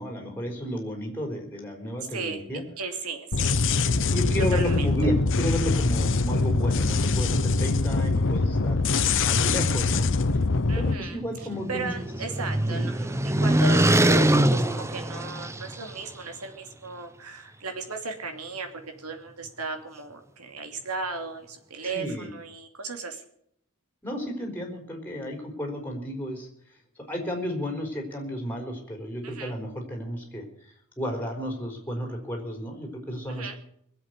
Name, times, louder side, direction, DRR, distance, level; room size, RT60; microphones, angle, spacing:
voice 1, 0.0-2.6 4.1-8.8 9.3-10.1 10.7-11.9 12.7-12.9 21.8-22.3 24.0-26.5 27.1-30.4 31.0-33.6, equal, 10° left, 1 dB, 4.1 m, -32 dB
voice 2, 2.1-2.4 2.8-3.6 4.5-4.9 10.7-11.2 11.7-18.7 19.0-23.2 29.2-29.5 33.3-33.6, right 4 dB, 85° right, 6 dB, 2.6 m, -36 dB
sound 1, 3.3-10.9, left 3 dB, 60° left, 0.9 m, -23 dB
sound 2, 11.1-15.9, right 1 dB, 15° right, 0.7 m, -23 dB
21.5 x 7.9 x 8.0 m, 0.70 s
head